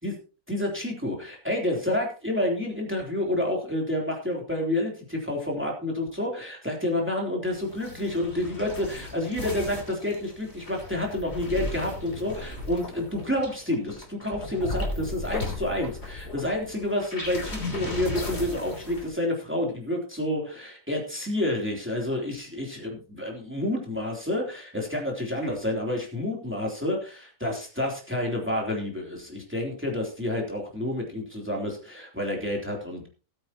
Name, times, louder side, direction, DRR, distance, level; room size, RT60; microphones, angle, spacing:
voice 1, 0.5-33.1, left 1 dB, 10° right, 0 dB, 3.3 m, -29 dB
sound 1, 7.5-19.1, left 2 dB, 45° left, 3.5 m, -36 dB
19.0 x 8.8 x 2.9 m, 0.34 s
omnidirectional pair, 1.6 m